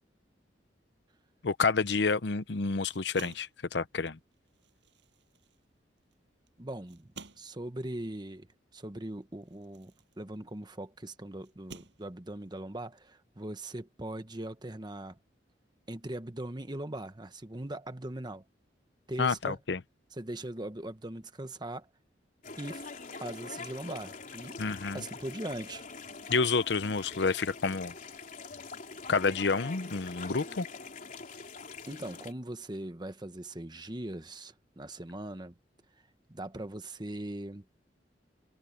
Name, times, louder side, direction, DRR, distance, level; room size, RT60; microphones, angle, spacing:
voice 1, 1.4-4.2 19.2-19.8 24.6-25.0 26.3-27.9 29.1-30.7, left 4 dB, 70° left, 0.7 m, -29 dB
sound 1, 2.8-10.8 11.4-12.5, right 4 dB, 80° right, 7.3 m, -54 dB
voice 2, 6.6-7.1 7.4-8.5 8.7-15.2 15.9-18.4 19.1-19.6 20.1-21.9 22.6-22.9 23.2-24.6 24.9-25.8 31.9-35.5 36.3-37.6, right 1 dB, 25° right, 1.2 m, -40 dB
sound 2, 22.4-32.3, left 4 dB, 50° left, 4.0 m, -44 dB
head